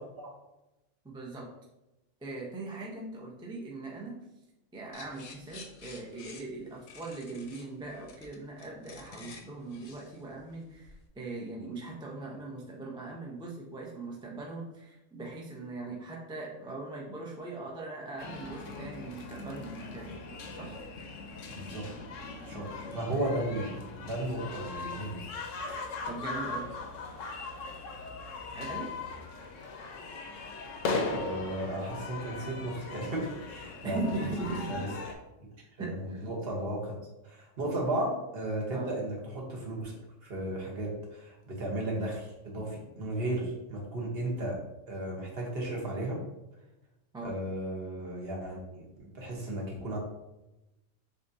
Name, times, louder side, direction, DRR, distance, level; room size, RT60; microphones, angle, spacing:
voice 1, 1.0-1.5 2.2-4.2 4.7-20.1 20.5-20.8 26.1-26.7 28.5-28.9 33.8-34.8 35.6-36.2 38.7-38.9 47.1-47.4, right 2 dB, 5° right, -3 dB, 0.5 m, -40 dB
sound 1, 4.9-11.1, left 5 dB, 70° left, 0.9 m, -51 dB
sound 2, 18.2-35.1, left 3 dB, 85° left, 1.0 m, -39 dB
voice 2, 21.5-21.9 22.4-25.3 31.1-34.0 34.7-34.9 35.8-37.0 37.2-39.9 40.2-44.6 44.9-46.2 47.2-50.0, right 1 dB, 55° right, -2 dB, 1.2 m, -35 dB
6.5 x 2.6 x 2.7 m, 0.95 s
omnidirectional pair, 1.3 m